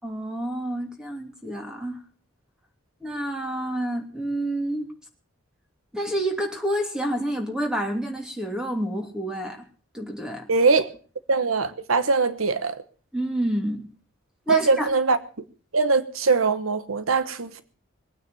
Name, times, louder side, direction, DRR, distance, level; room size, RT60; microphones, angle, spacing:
voice 1, 0.0-2.0 3.0-4.9 5.9-9.6 9.9-10.5 13.1-13.9 14.5-14.9, right 1 dB, 5° right, 3.0 m, -28 dB
voice 2, 10.5-10.9 11.3-12.8 14.5-15.2 15.7-17.6, right 4 dB, 90° right, 1.2 m, -22 dB
21.5 x 9.3 x 7.0 m
head